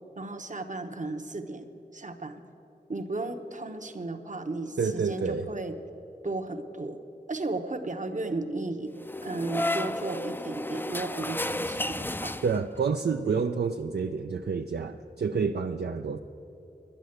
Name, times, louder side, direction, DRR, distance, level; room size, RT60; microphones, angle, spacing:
voice 1, 0.2-1.7 1.9-2.4 2.9-5.8 6.2-7.0 7.3-8.9 9.2-12.4, right 2 dB, 45° right, 6 dB, 0.9 m, -34 dB
voice 2, 4.8-5.5 12.4-16.2, right 5 dB, 65° right, 5 dB, 0.4 m, -28 dB
sound 1, 9.0-12.9, left 1 dB, 10° left, 0.4 m, -32 dB
10.5 x 10.0 x 7.8 m, 3.0 s
wide cardioid pair, 50°, 18 cm